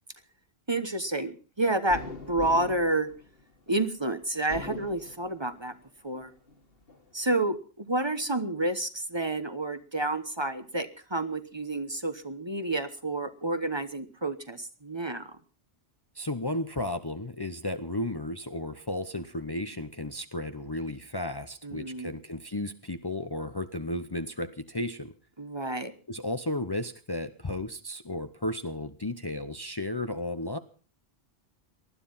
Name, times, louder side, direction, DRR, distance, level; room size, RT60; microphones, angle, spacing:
voice 1, 0.7-2.0 2.3-3.1 3.7-5.7 6.0-6.3 7.1-15.4 21.6-22.1 25.4-25.9, right 2 dB, 25° right, 11 dB, 1.1 m, -29 dB
sound 1, 1.9-3.8 4.3-5.7 6.1-7.0, left 2 dB, 70° left, 2.5 m, -42 dB
voice 2, 16.2-25.1 26.1-30.6, left 1 dB, 25° left, 10 dB, 0.8 m, -34 dB
19.5 x 12.5 x 5.6 m, 0.39 s
omnidirectional pair, 1.0 m